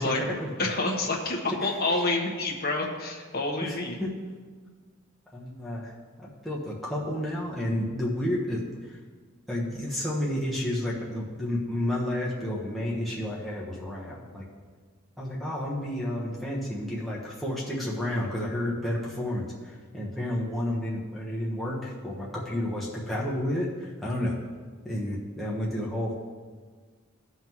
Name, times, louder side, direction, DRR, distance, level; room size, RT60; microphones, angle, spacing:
voice 1, 0.0-0.7 1.6-1.7 3.6-4.1 5.3-5.9 6.2-8.6 8.9-9.0 9.5-14.5 15.2-24.4 24.8-26.2, left 1 dB, ahead, -7 dB, 1.2 m, -31 dB
voice 2, 0.6-4.0, left 2 dB, 45° left, 0 dB, 1.3 m, -28 dB
15.5 x 5.6 x 3.1 m, 1.5 s
head